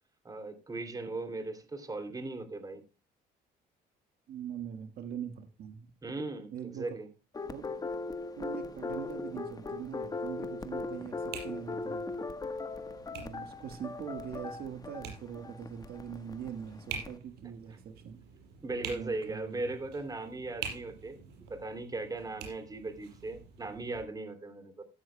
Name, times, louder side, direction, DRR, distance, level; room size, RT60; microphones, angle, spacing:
voice 1, 0.2-2.8 6.0-7.1 18.6-21.2 21.5-24.8, right 2 dB, 20° right, 7 dB, 2.8 m, -38 dB
voice 2, 4.3-5.9 6.5-7.0 7.5-7.8 8.4-12.0 13.1-18.2 18.8-19.6, right 8 dB, 65° right, 8 dB, 1.6 m, -42 dB
sound 1, 7.3-17.2, left 3 dB, 20° left, 1.3 m, -39 dB
sound 2, 8.9-24.0, right 7 dB, 80° right, 5.8 m, -48 dB
15.0 x 13.5 x 2.2 m, 0.31 s
cardioid pair, 110°, 17 cm